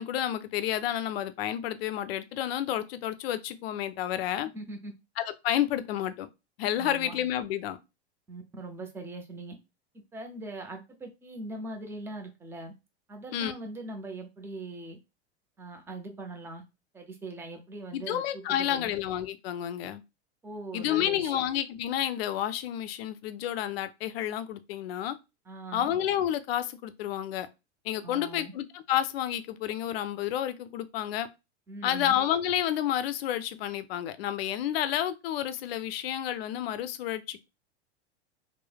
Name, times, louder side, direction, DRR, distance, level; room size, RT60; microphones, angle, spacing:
voice 1, 0.0-4.5 5.2-6.3 6.6-7.8 13.3-13.5 17.9-20.0 20.7-25.2 25.7-27.5 27.9-31.3 31.8-37.5, left 11 dB, 65° left, 0.5 m, -30 dB
voice 2, 4.5-4.9 6.8-7.2 8.3-9.6 10.1-12.7 13.1-15.0 15.6-16.6 16.9-18.9 20.4-21.4 25.5-25.9 28.0-28.5 31.7-32.1, right 2 dB, 5° right, 0.4 m, -41 dB
3.1 x 2.1 x 2.2 m
hypercardioid pair, 100°, 34 cm